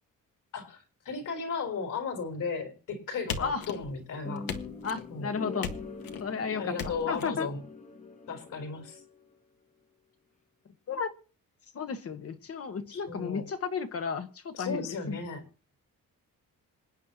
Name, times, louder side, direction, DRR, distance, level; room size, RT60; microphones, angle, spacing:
voice 1, 1.0-4.5 5.1-5.3 6.4-7.6 8.3-9.0 12.9-13.5 14.5-15.5, left 4 dB, 60° left, 6 dB, 4.1 m, -35 dB
sound 1, 3.3-4.1 4.5-5.1 5.6-6.3 6.8-7.3, left 7 dB, 85° left, 1.6 m, -38 dB
sound 2, 4.2-9.4, left 3 dB, 20° left, 1.3 m, -43 dB
voice 2, 4.8-5.7 6.2-7.5 10.9-11.1 11.7-15.2, left 5 dB, 40° left, 8 dB, 1.3 m, -33 dB
27.0 x 9.3 x 2.9 m, 0.38 s
wide cardioid pair, 165°, 35 cm